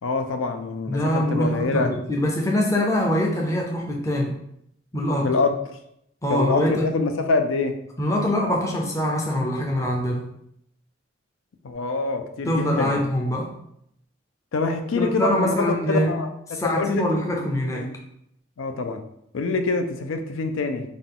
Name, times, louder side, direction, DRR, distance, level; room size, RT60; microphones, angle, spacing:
voice 1, 0.0-1.9 5.2-5.6 6.3-7.8 11.6-13.0 14.5-16.3 16.6-17.1 17.7-17.9 18.6-19.0 19.3-20.8, left 3 dB, 85° left, 7 dB, 0.5 m, -25 dB
voice 2, 0.9-4.3 4.9-5.3 6.2-6.9 8.0-10.3 12.5-13.5 15.0-16.2 16.5-17.9, equal, 15° left, -1 dB, 0.5 m, -24 dB
3.7 x 2.3 x 3.7 m, 0.76 s
head